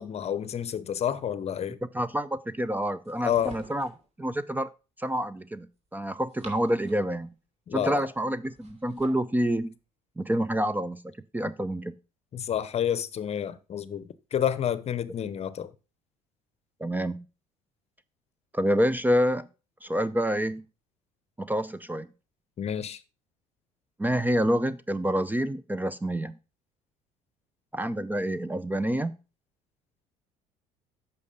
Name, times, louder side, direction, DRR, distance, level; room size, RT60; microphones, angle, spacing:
voice 1, 0.0-1.8 3.2-3.6 7.7-8.0 12.3-15.7 22.6-23.0, left 9 dB, 40° left, 0.8 m, -29 dB
voice 2, 1.9-3.9 4.2-4.7 5.0-7.3 7.7-9.7 10.2-11.0 11.3-12.0 16.8-17.3 18.5-19.5 19.8-20.6 21.4-22.1 24.0-26.3 27.7-29.1, equal, 10° right, 0.5 m, -27 dB
sound 1, 3.0-4.1 6.0-7.2 8.4-9.3, right 2 dB, 40° right, 2.8 m, -50 dB
8.4 x 5.7 x 5.4 m
hypercardioid pair, 75°, 16 cm